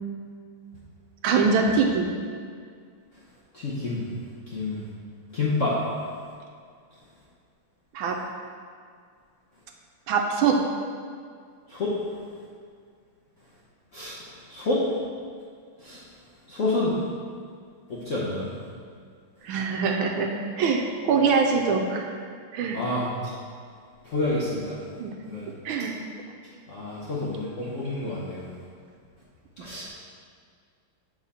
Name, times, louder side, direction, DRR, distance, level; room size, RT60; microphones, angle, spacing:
voice 1, 1.2-2.1 7.9-8.2 10.1-10.6 19.4-22.1 22.5-22.8 25.0-25.2 25.6-25.9 29.6-29.7, right 5 dB, 75° right, 2 dB, 1.3 m, -23 dB
voice 2, 3.5-4.1 4.5-4.8 5.3-5.8 11.7-12.0 13.9-14.2 14.5-14.8 15.8-16.0 16.5-17.0 17.9-18.5 22.7-23.1 24.0-24.8 25.3-25.5 26.7-28.4 29.6-29.9, left 2 dB, 60° left, -7 dB, 0.8 m, -28 dB
7.3 x 3.9 x 4.2 m, 2.1 s
omnidirectional pair, 2.4 m